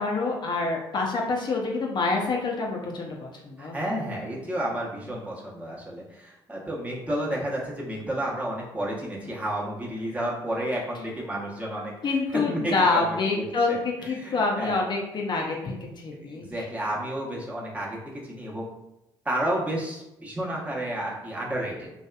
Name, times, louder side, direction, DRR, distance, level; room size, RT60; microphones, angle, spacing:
voice 1, 0.0-3.8 12.0-16.6, left 3 dB, 45° left, -1 dB, 0.5 m, -27 dB
voice 2, 3.6-12.1 12.5-14.8 16.1-18.0 18.2-18.7 19.2-21.9, right 1 dB, 15° right, -4 dB, 0.9 m, -31 dB
2.7 x 2.3 x 2.2 m, 0.90 s
hypercardioid pair, 65°, 11 cm